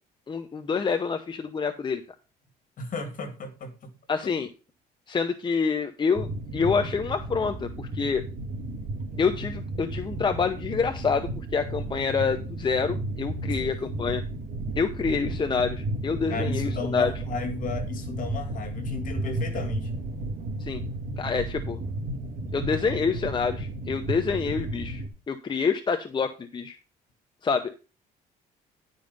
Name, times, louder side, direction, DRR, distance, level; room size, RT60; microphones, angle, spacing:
voice 1, 0.3-2.0 4.1-4.5 5.1-6.3 6.5-8.2 9.2-14.2 14.8-17.1 20.6-20.8 21.2-21.8 22.5-26.8 27.4-27.7, left 5 dB, 25° left, 0.8 m, -27 dB
voice 2, 2.8-3.9 13.5-13.7 16.3-19.9, left 4 dB, 50° left, 2.4 m, -34 dB
sound 1, 6.1-25.1, right 2 dB, 50° right, 2.3 m, -33 dB
10.5 x 5.3 x 5.3 m
cardioid pair, 110°, 17 cm